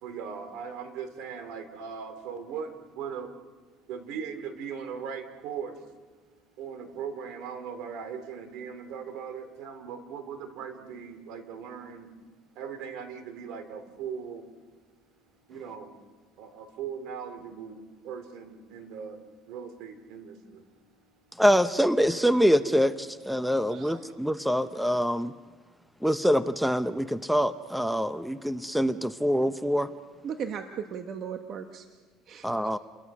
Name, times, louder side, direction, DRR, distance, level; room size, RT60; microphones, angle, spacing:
voice 1, 0.0-3.3 3.9-5.9 6.6-12.1 12.5-14.5 15.5-16.0 16.4-20.7, right 7 dB, 70° right, 8 dB, 3.1 m, -39 dB
voice 2, 21.4-25.3 26.0-29.9 32.4-32.8, equal, ahead, 11 dB, 0.8 m, -25 dB
voice 3, 30.2-31.8 32.3-32.5, right 7 dB, 50° right, 6 dB, 1.4 m, -36 dB
29.5 x 22.0 x 6.2 m, 1.4 s
cardioid pair, 115°, 0 cm